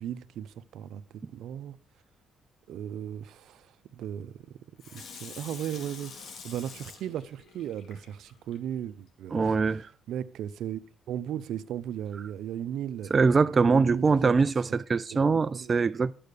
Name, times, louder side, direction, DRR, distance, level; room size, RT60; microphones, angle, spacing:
voice 1, 0.0-1.8 2.7-4.4 4.9-9.8 10.1-10.8 11.1-13.1 13.6-14.3 14.7-14.8 15.1-15.2 15.5-15.9, right 10 dB, 80° right, 0.7 m, -36 dB
Water tap faucet / Sink (filling or washing), 4.8-8.6 9.1-9.2, left 5 dB, 65° left, 2.1 m, -46 dB
voice 2, 9.3-9.9 13.1-16.1, right 4 dB, 35° right, 0.4 m, -23 dB
10.0 x 7.7 x 6.7 m
cardioid pair, 90°, 0 cm